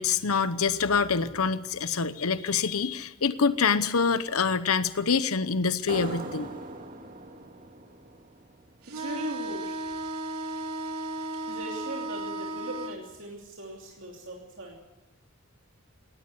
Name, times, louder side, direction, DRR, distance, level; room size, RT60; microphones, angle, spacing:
voice 1, 0.0-6.5, left 5 dB, 75° left, 13 dB, 0.9 m, -26 dB
sound 1, 5.9-9.2, right 2 dB, 40° right, 2.1 m, -41 dB
sound 2, 8.8-13.0, right 1 dB, 85° right, 2.8 m, -35 dB
voice 2, 8.9-9.8 11.5-14.8, right 1 dB, 60° right, -1 dB, 3.0 m, -39 dB
18.0 x 17.0 x 9.7 m, 1.1 s
head